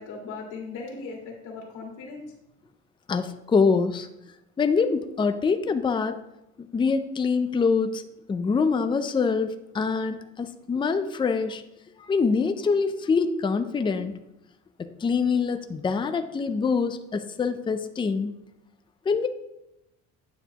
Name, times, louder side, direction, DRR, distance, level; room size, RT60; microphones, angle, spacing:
voice 1, 0.0-2.2, left 4 dB, 80° left, -1 dB, 2.1 m, -38 dB
voice 2, 3.1-4.1 4.6-6.2 6.6-8.0 8.3-11.6 12.0-14.1 14.8-18.4 19.1-19.3, left 5 dB, 15° left, 9 dB, 0.5 m, -25 dB
9.1 x 7.1 x 3.0 m, 0.86 s
cardioid pair, 120°, 30 cm